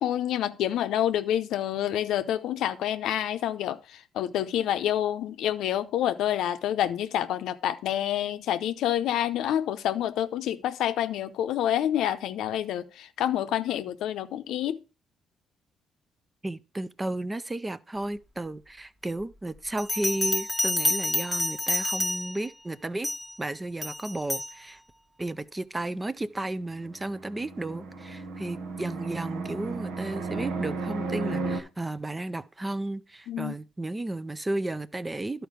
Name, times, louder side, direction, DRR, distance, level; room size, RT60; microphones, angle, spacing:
voice 1, 0.0-14.8 33.3-33.5, left 11 dB, 85° left, 0.6 m, -28 dB
voice 2, 16.4-23.1 23.4-24.8 25.2-35.5, right 2 dB, 20° right, 0.5 m, -33 dB
Bell, 19.8-22.5 23.0-23.3 23.8-24.5, left 1 dB, 5° left, 1.1 m, -28 dB
Fixed-wing aircraft airplane, 26.7-31.6, right 3 dB, 90° right, 1.3 m, -34 dB
11.5 x 4.6 x 4.9 m
cardioid pair, 90°, 0 cm